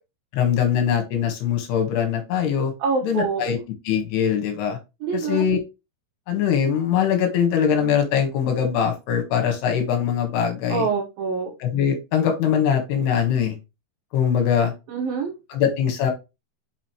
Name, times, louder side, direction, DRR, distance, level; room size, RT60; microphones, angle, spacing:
voice 1, 0.3-2.7 3.0-3.6 3.9-4.8 5.3-5.6 6.3-10.9 11.6-13.6 14.1-14.7 15.5-16.1, left 8 dB, 80° left, 4 dB, 3.4 m, -22 dB
voice 2, 2.8-3.5 5.0-5.4 10.7-11.5 14.9-15.3, right 5 dB, 65° right, 1 dB, 2.8 m, -25 dB
6.2 x 6.1 x 3.1 m, 0.26 s
omnidirectional pair, 4.7 m